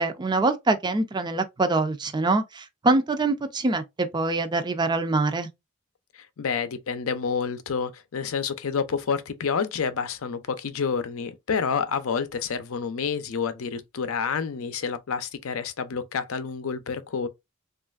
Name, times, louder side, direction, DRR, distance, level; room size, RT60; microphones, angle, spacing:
voice 1, 0.0-5.5, right 2 dB, 20° right, 0.4 m, -24 dB
voice 2, 6.1-17.3, left 6 dB, 85° left, 0.5 m, -29 dB
3.1 x 2.4 x 2.3 m
head